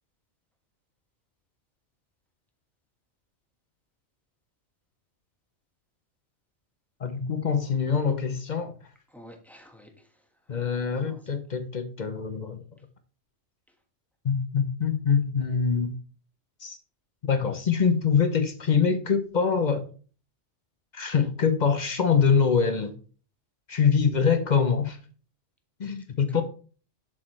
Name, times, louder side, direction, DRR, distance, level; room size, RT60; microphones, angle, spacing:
voice 1, 7.0-8.7 10.5-12.6 14.2-15.9 16.6-16.8 17.2-19.9 20.9-22.9 23.7-25.0 25.8-26.4, left 6 dB, 45° left, 0.7 m, -24 dB
voice 2, 9.1-11.3 26.3-26.4, equal, ahead, 1.3 m, -50 dB
7.3 x 6.4 x 3.1 m
omnidirectional pair, 1.2 m